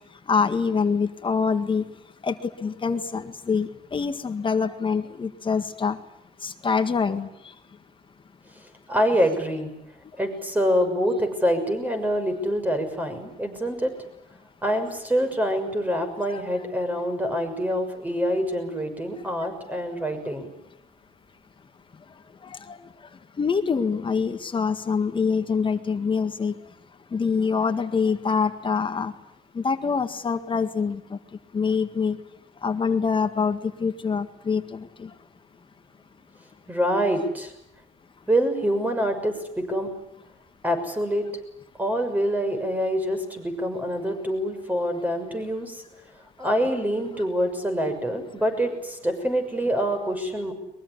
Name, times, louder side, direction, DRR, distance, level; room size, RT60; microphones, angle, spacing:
voice 1, 0.3-1.8 2.2-6.0 6.4-7.3 16.3-16.4 22.7-22.8 23.4-26.6 27.1-29.1 29.6-31.2 31.5-32.2 32.6-35.1, left 5 dB, 30° left, 8 dB, 1.8 m, -25 dB
voice 2, 8.9-9.7 10.2-13.9 14.6-20.5 36.7-37.5 38.3-39.9 40.6-41.3 41.8-45.8 46.4-50.5, equal, 10° right, 7 dB, 6.5 m, -25 dB
23.0 x 22.5 x 10.0 m, 0.81 s
cardioid pair, 110°, 17 cm